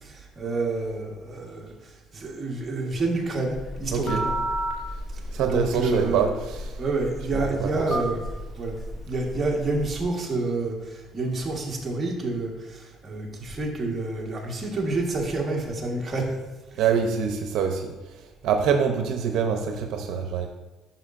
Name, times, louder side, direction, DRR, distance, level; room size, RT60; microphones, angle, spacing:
voice 1, 0.0-4.4 5.5-6.3 6.8-8.2 8.6-8.8 9.1-16.3 16.7-16.9, right 2 dB, 20° right, -2 dB, 1.4 m, -28 dB
Telephone, 3.5-9.9, right 1 dB, 25° left, 1.3 m, -33 dB
voice 2, 3.9-4.2 5.3-6.8 7.3-7.9 16.8-17.9 18.4-20.5, right 7 dB, 75° right, 5 dB, 0.6 m, -25 dB
9.8 x 5.7 x 2.5 m, 1.2 s
cardioid pair, 140°, 0 cm